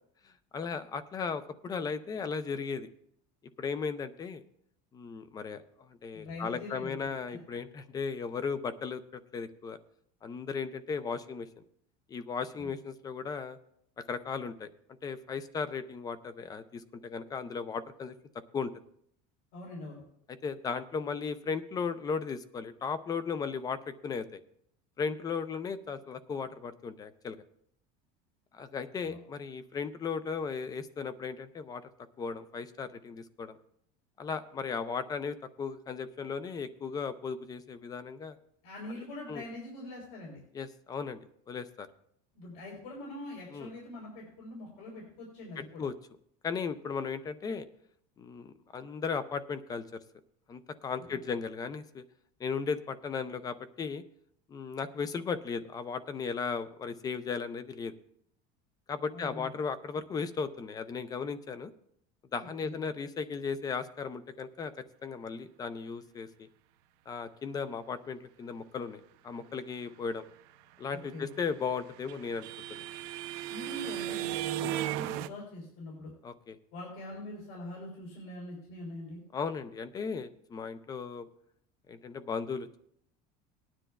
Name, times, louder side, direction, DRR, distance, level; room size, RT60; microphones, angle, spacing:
voice 1, 0.2-2.9 3.6-4.4 4.9-9.8 10.2-11.5 12.1-13.6 14.0-14.7 15.0-18.2 18.5-18.7 20.3-24.4 25.0-27.4 28.5-31.8 32.2-33.6 34.2-38.4 39.3-39.4 40.5-41.2 41.5-41.9 43.5-43.7 45.8-45.9 46.4-47.7 48.2-50.0 50.5-52.0 52.4-54.0 54.5-57.9 58.9-61.7 62.3-66.5 67.1-70.2 70.8-72.8 74.6-74.8 76.2-76.6 79.3-81.3 81.9-82.8, left 5 dB, 20° left, 13 dB, 0.4 m, -36 dB
voice 2, 6.1-7.4 12.6-12.7 19.5-20.0 29.0-29.2 38.6-40.4 42.3-45.9 51.0-51.2 59.1-59.5 62.4-62.8 70.9-71.3 73.5-76.1 76.7-79.2, left 1 dB, 80° left, -2 dB, 3.8 m, -43 dB
sound 1, 71.4-75.3, right 13 dB, 70° right, 0.6 m, -35 dB
19.0 x 10.0 x 2.3 m, 0.68 s
cardioid pair, 165°, 20 cm